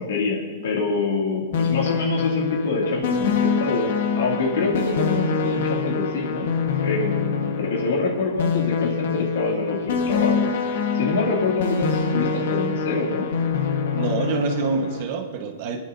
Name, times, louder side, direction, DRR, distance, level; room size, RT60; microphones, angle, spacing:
voice 1, 0.0-6.5 6.8-10.4 10.6-13.3, left 3 dB, 85° left, -2 dB, 2.5 m, -25 dB
sound 1, 1.5-15.0, left 5 dB, 70° left, 1.3 m, -25 dB
voice 2, 13.9-15.8, right 4 dB, 45° right, 4 dB, 1.3 m, -26 dB
27.5 x 11.0 x 2.7 m, 1.3 s
supercardioid pair, 170°, 0 cm